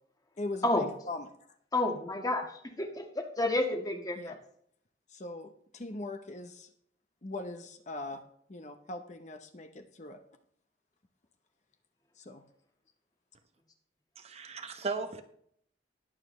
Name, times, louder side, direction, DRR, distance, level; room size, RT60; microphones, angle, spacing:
voice 1, 0.4-1.3 4.2-4.4 5.1-6.7 7.2-8.2 8.5-10.2 12.2-12.4, left 2 dB, 40° left, 8 dB, 0.9 m, -41 dB
voice 2, 1.7-2.4 2.8-4.3, left 2 dB, 20° left, 3 dB, 1.6 m, -30 dB
voice 3, 14.2-15.2, right 4 dB, 35° right, 8 dB, 0.8 m, -36 dB
20.0 x 7.3 x 3.2 m, 0.68 s
head